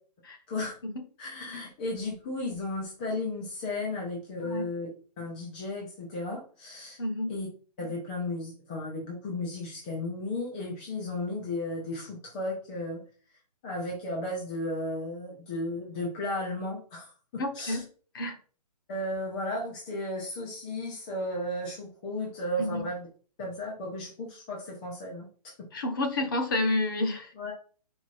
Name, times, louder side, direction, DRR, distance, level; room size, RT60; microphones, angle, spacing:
voice 1, 1.2-4.9 5.2-7.0 7.3-7.5 7.8-13.0 13.6-17.8 18.9-23.1 23.4-25.7 27.4-27.5, left 1 dB, 10° left, -3 dB, 0.6 m, -34 dB
voice 2, 7.0-7.3 17.4-17.8 18.1-18.4 22.6-22.9 25.7-27.3, left 2 dB, 30° left, 5 dB, 1.0 m, -29 dB
5.1 x 4.8 x 4.1 m, 0.41 s
hypercardioid pair, 175°, 21 cm